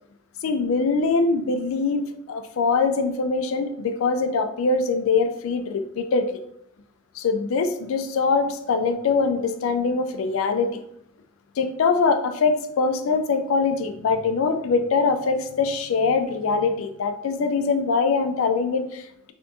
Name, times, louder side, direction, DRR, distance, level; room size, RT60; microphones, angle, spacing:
voice 1, 0.4-6.4 7.2-10.8 11.6-19.3, left 4 dB, 75° left, 8 dB, 0.4 m, -23 dB
3.4 x 2.5 x 2.6 m, 0.75 s
head